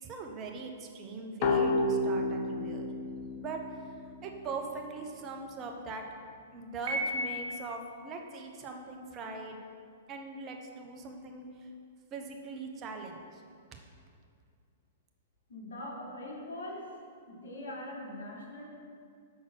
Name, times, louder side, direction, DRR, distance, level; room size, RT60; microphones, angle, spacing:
voice 1, 0.0-2.9 3.4-3.6 4.2-6.0 6.5-9.6 10.1-11.7 12.1-13.4, right 3 dB, 30° right, 2 dB, 0.9 m, -41 dB
sound 1, 1.4-4.9, left 2 dB, 45° left, 0.8 m, -31 dB
Piano, 6.9-8.0, equal, 55° right, 1.2 m, -34 dB
voice 2, 15.5-17.0 17.3-18.6, left 1 dB, 70° left, -2 dB, 1.6 m, -42 dB
6.2 x 4.2 x 6.2 m, 2.3 s
figure-of-eight pair, 110°, 0 cm